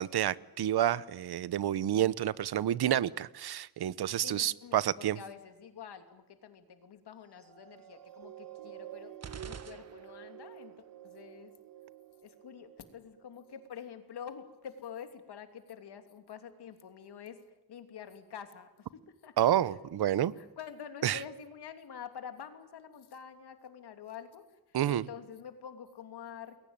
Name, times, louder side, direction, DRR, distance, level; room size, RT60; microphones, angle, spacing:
voice 1, 0.0-5.2 19.4-20.3 21.0-21.2 24.7-25.1, right 11 dB, 80° right, 0.9 m, -29 dB
voice 2, 4.2-9.2 9.4-11.5 12.2-17.4 17.7-19.3 19.7-19.8 20.3-26.6, left 8 dB, 85° left, 3.0 m, -47 dB
sound 1, 7.3-14.0 14.6-14.7, right 12 dB, 60° right, 1.9 m, -50 dB
sound 2, 9.2-10.5, right 6 dB, 40° right, 1.5 m, -47 dB
29.5 x 21.5 x 9.0 m
wide cardioid pair, 175°, 38 cm